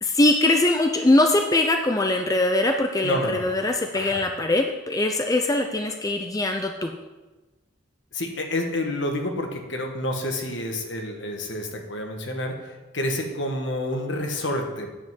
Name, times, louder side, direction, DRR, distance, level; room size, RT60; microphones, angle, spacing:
voice 1, 0.0-6.9, left 2 dB, 20° left, 4 dB, 0.5 m, -22 dB
voice 2, 3.0-3.4 3.9-4.2 8.1-12.6 12.9-14.9, left 1 dB, 65° left, 3 dB, 1.5 m, -28 dB
9.0 x 5.5 x 7.4 m, 1.2 s
head